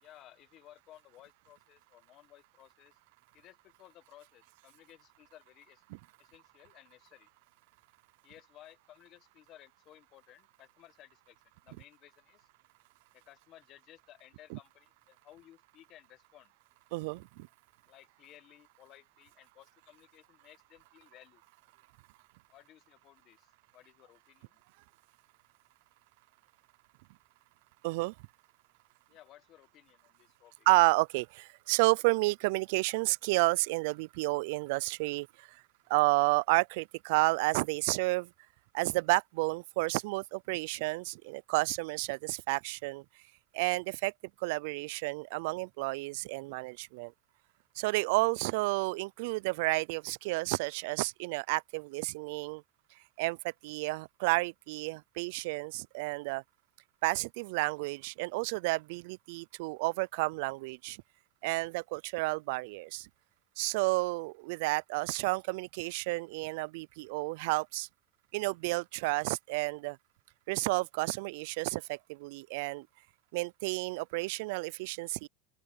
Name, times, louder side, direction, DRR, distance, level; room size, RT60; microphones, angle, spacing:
voice 1, 0.0-3.0 3.3-5.8 6.2-7.3 8.2-11.4 11.6-12.5 13.1-16.5 17.9-21.4 22.5-24.6 29.1-30.7, left 14 dB, 45° left, 1.5 m, -58 dB
voice 2, 16.9-17.5 27.8-28.1 30.7-35.6 35.9-38.3 38.7-43.0 43.5-44.1 44.4-47.1 47.8-52.6 53.2-56.4 57.0-61.0 61.4-63.1 63.6-67.9 68.3-70.0 70.5-72.9 73.3-75.3, right 25 dB, 70° right, 0.3 m, -31 dB
open air
supercardioid pair, 140°, 0 cm